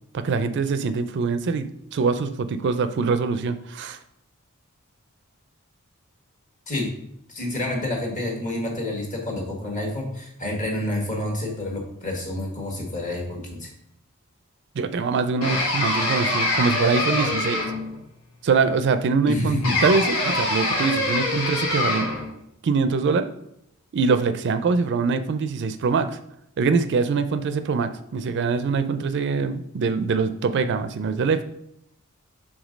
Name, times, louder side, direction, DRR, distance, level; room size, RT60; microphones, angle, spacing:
voice 1, 0.1-4.0 14.8-17.6 18.4-22.1 22.6-23.3 23.9-26.2 26.6-31.4, right 4 dB, 55° right, 11 dB, 0.4 m, -23 dB
voice 2, 7.3-13.7 19.3-19.8, left 1 dB, 35° left, 0 dB, 1.5 m, -28 dB
sound 1, 15.4-18.0 19.6-22.3, left 2 dB, 85° left, 1.7 m, -24 dB
5.1 x 3.6 x 5.1 m, 0.77 s
head